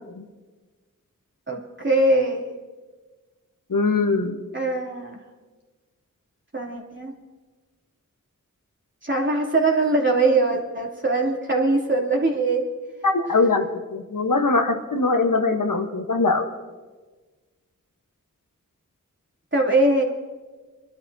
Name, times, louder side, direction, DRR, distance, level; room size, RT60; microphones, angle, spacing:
voice 1, 1.5-2.5 4.5-5.2 6.5-7.1 9.0-12.6 19.5-20.0, right 2 dB, 35° right, -2 dB, 3.0 m, -21 dB
voice 2, 3.7-4.4 13.0-16.5, left 3 dB, 75° left, 4 dB, 1.2 m, -22 dB
28.5 x 12.5 x 2.8 m, 1.3 s
wide cardioid pair, 55°, 32 cm